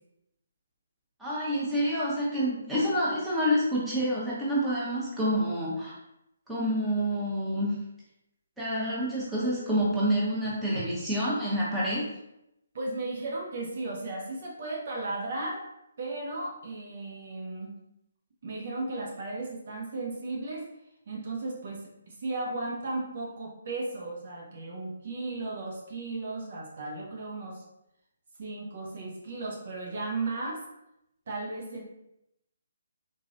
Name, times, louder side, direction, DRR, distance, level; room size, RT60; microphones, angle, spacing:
voice 1, 1.2-5.9 6.5-7.8 8.6-12.0, equal, 5° right, -9 dB, 1.2 m, -28 dB
voice 2, 12.7-15.6 16.0-17.8 18.4-20.7 21.1-27.6 28.4-30.6 31.3-31.8, right 2 dB, 55° right, -2 dB, 0.8 m, -35 dB
3.9 x 3.0 x 2.5 m, 0.82 s
figure-of-eight pair, 145°, 0 cm